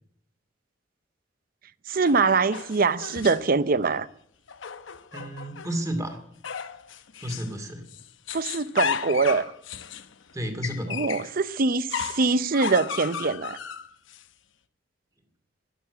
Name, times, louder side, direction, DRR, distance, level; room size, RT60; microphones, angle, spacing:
voice 1, 1.9-4.1 8.3-9.4 10.9-13.6, right 4 dB, 45° right, 0.6 m, -23 dB
sound 1, 2.0-3.6 4.5-5.8 6.4-7.6 7.9-11.3 11.9-14.2, left 7 dB, 75° left, 0.9 m, -34 dB
voice 2, 5.1-6.2 7.2-7.8 10.3-11.2, equal, 15° right, 2.4 m, -32 dB
12.0 x 12.0 x 9.3 m
head